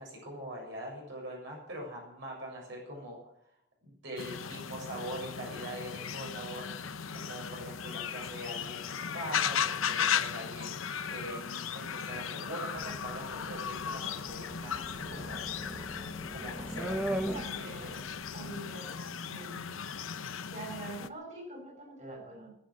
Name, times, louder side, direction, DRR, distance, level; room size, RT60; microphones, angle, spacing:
voice 1, 0.0-3.2 3.8-10.7 11.1-15.4 16.3-17.2 17.6-18.0 18.4-18.7, equal, 65° right, -2 dB, 7.3 m, -43 dB
sound 1, 4.2-21.1, left 7 dB, 85° left, 0.8 m, -36 dB
sound 2, 12.8-18.6, right 1 dB, 5° right, 1.0 m, -39 dB
voice 2, 17.3-18.0 18.3-19.0 19.2-19.8 20.5-22.6, right 2 dB, 35° right, 1 dB, 6.2 m, -44 dB
21.0 x 9.6 x 6.6 m, 0.71 s
head